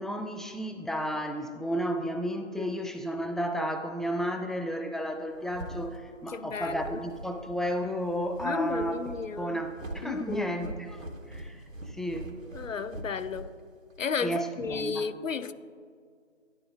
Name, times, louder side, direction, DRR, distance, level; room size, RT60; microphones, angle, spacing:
voice 1, 0.0-9.0 9.4-11.0 11.3-11.6 11.9-12.3 14.2-15.1, equal, ahead, 0.3 m, -32 dB
voice 2, 2.6-2.9 6.3-7.0 8.4-9.6 10.0-10.7 12.5-13.6 14.0-15.5, left 5 dB, 85° left, 0.5 m, -33 dB
sound 1, 5.1-14.0, right 1 dB, 85° right, 1.1 m, -43 dB
11.5 x 4.1 x 2.4 m
figure-of-eight pair, 165°, 38 cm